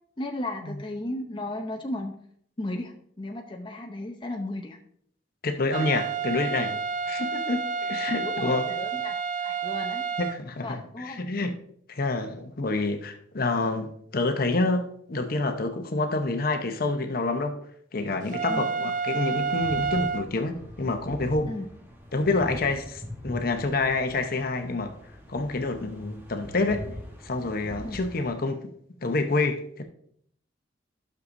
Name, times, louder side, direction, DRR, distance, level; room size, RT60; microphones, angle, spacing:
voice 1, 0.2-2.2 2.6-4.8 8.2-10.0 10.6-11.3 18.5-18.7 21.5-21.7 27.8-28.0, left 1 dB, 25° left, 0.7 m, -35 dB
voice 2, 5.4-6.8 7.1-8.7 10.2-11.5 11.9-17.6 17.9-21.5 22.1-24.9 25.3-26.8 27.2-28.6 29.0-29.8, left 3 dB, 50° left, 0.9 m, -28 dB
sound 1, 5.7-10.4 18.3-20.2, right 6 dB, 45° right, 0.4 m, -29 dB
sound 2, 19.3-28.3, equal, 10° right, 1.3 m, -42 dB
12.5 x 6.6 x 2.6 m
head